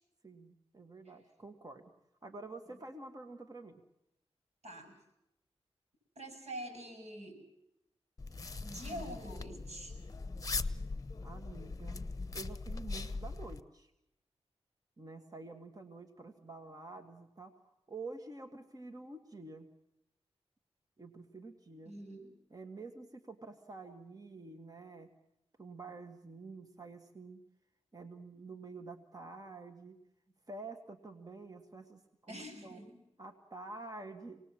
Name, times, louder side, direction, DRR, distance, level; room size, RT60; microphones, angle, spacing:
voice 1, 0.2-1.9 2.2-3.8 11.2-12.1 12.3-13.9 15.0-19.7 21.0-21.9 22.5-25.1 25.6-27.4 27.9-30.0 30.5-32.8 33.2-34.4, right 3 dB, 35° right, 6 dB, 1.7 m, -48 dB
voice 2, 4.6-5.0 6.1-7.4 8.6-9.9 21.8-22.3 32.3-33.0, right 1 dB, 85° right, 4 dB, 6.7 m, -45 dB
sound 1, 8.2-13.6, left 3 dB, 35° left, 0.9 m, -40 dB
26.5 x 19.5 x 7.5 m, 0.84 s
wide cardioid pair, 80°, 11 cm